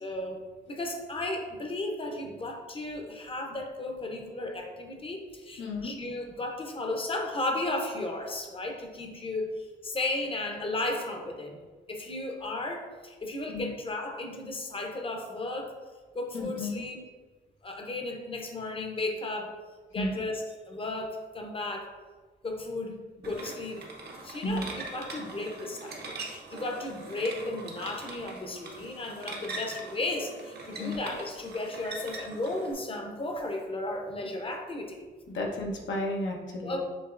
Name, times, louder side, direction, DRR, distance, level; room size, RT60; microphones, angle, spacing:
voice 1, 0.0-11.6 11.9-15.7 16.1-17.1 17.6-19.5 19.9-21.9 22.4-23.8 24.2-35.0 36.6-36.8, left 2 dB, 30° left, 2 dB, 0.7 m, -34 dB
voice 2, 5.6-5.9 13.5-13.7 16.3-16.8 19.9-20.2 24.4-24.7 30.8-31.0 35.3-36.8, left 1 dB, 85° left, -1 dB, 0.9 m, -32 dB
sound 1, 23.2-32.7, right 2 dB, 60° right, 0.9 m, -42 dB
7.2 x 2.9 x 2.5 m, 1.3 s
wide cardioid pair, 135°, 19 cm